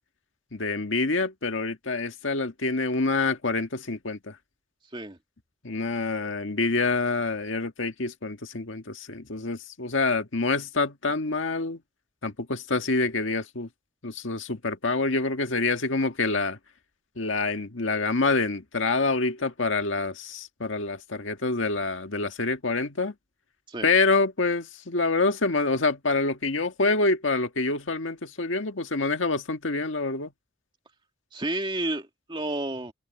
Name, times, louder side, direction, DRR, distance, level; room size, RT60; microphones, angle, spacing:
voice 1, 0.5-4.3 5.6-11.8 12.2-13.7 14.0-16.6 17.2-23.1 23.8-30.3, left 3 dB, 80° left, 1.7 m, -26 dB
voice 2, 31.3-32.9, right 2 dB, 25° right, 2.4 m, -31 dB
head